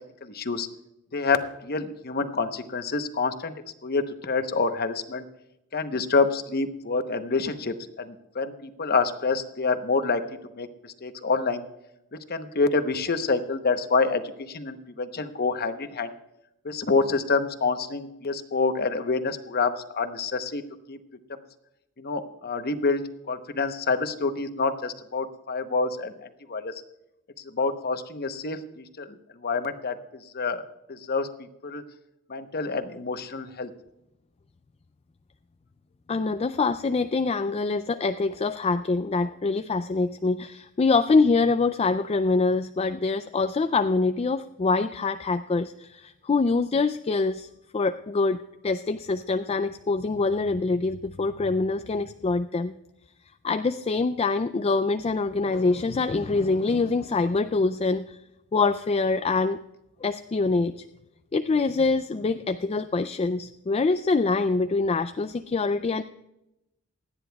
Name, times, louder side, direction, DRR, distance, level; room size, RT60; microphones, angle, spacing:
voice 1, 0.2-0.7 1.1-3.5 3.8-5.2 5.7-10.2 10.5-11.6 12.3-16.1 16.6-20.6 20.9-21.0 22.0-23.0 23.3-26.1 26.5-26.7 27.5-29.1 29.4-30.0 30.3-31.8 32.3-33.7, left 4 dB, 45° left, 9 dB, 0.9 m, -27 dB
voice 2, 36.1-47.5 47.7-52.7 53.4-58.2 58.5-59.6 60.0-60.9 61.3-66.0, left 3 dB, 25° left, 9 dB, 0.3 m, -25 dB
27.5 x 9.8 x 2.3 m, 0.90 s
head